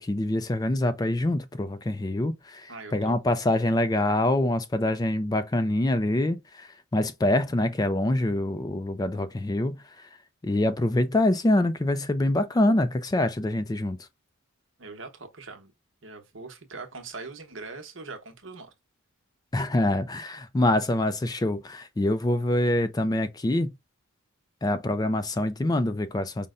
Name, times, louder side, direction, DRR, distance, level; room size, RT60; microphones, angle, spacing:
voice 1, 0.0-10.1 10.4-14.0 19.5-23.7 24.6-26.5, left 1 dB, 20° left, 0.3 m, -25 dB
voice 2, 2.7-3.2 14.8-15.7 16.0-18.7, right 3 dB, 65° right, 1.0 m, -41 dB
5.3 x 2.1 x 3.6 m
head